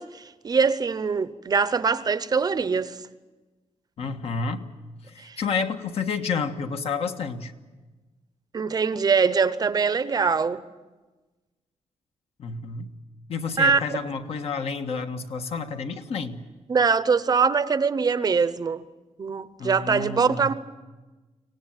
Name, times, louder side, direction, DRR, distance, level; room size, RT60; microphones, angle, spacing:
voice 1, 0.0-3.0 5.2-5.4 8.5-10.6 13.6-14.1 16.7-18.8 19.2-20.5, right 5 dB, 35° right, 0.8 m, -23 dB
voice 2, 4.0-4.7 5.1-7.5 12.4-12.9 13.3-16.4 19.6-20.5, left 5 dB, 60° left, 1.6 m, -30 dB
24.5 x 18.5 x 8.9 m
wide cardioid pair, 165°, 12 cm